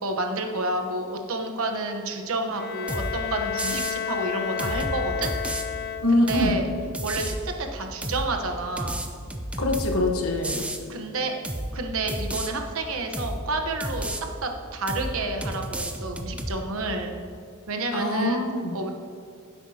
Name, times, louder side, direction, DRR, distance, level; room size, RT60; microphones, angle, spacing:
voice 1, 0.0-5.3 6.1-6.7 7.0-9.0 10.9-11.3 11.7-17.1 17.7-18.4 18.7-18.9, right 2 dB, 75° right, 4 dB, 1.1 m, -30 dB
Bowed string instrument, 2.5-6.5, left 8 dB, 45° left, 0.5 m, -31 dB
sound 1, 2.9-3.1 3.6-4.0 4.6-5.6 6.3-6.5 6.9-7.4 8.0-8.3 8.8-10.0 10.4-10.8 11.4-11.7 12.1-12.5 13.1-13.4 13.8-14.2 14.9-15.1 15.4-16.6, right 1 dB, 5° right, 0.5 m, -31 dB
voice 2, 6.0-6.6 9.6-10.6 17.9-18.8, left 1 dB, 80° left, 3 dB, 1.2 m, -24 dB
15.5 x 8.1 x 2.9 m, 2.3 s
head